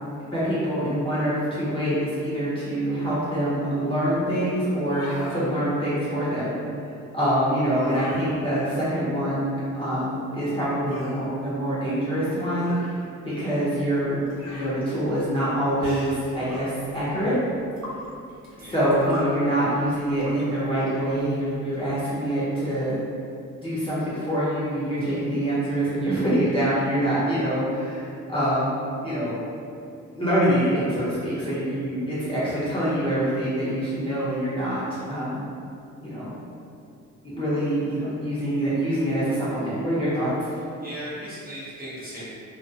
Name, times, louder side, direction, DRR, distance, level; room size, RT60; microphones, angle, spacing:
voice 1, 0.3-6.5 7.1-12.8 13.2-14.2 14.5-17.3 18.6-23.0 23.6-28.7 29.0-29.3 30.1-35.4 36.0-36.3 37.2-40.3, right 1 dB, 15° left, -11 dB, 0.7 m, -25 dB
sound 1, 4.8-5.4 7.6-8.3 10.9-11.2 12.6-13.0 14.3-14.8 16.4-16.8, left 1 dB, 60° left, 0.6 m, -40 dB
sound 2, 14.1-21.9, left 1 dB, 60° right, 0.9 m, -42 dB
voice 2, 18.5-18.9 40.8-42.2, equal, 30° right, -10 dB, 0.8 m, -37 dB
2.3 x 2.2 x 2.7 m, 2.4 s
cardioid pair, 90°, 30 cm